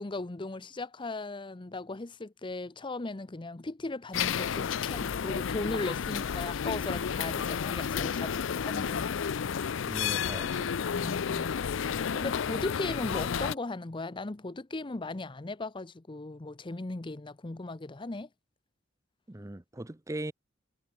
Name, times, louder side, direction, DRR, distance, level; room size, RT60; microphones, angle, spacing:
voice 1, 0.0-9.3 10.9-11.6 12.1-18.3, left 2 dB, 25° left, 0.7 m, -37 dB
sound 1, 4.1-13.5, left 7 dB, 65° left, 0.5 m, -31 dB
voice 2, 9.9-10.8 19.3-20.3, right 1 dB, 15° right, 0.7 m, -39 dB
head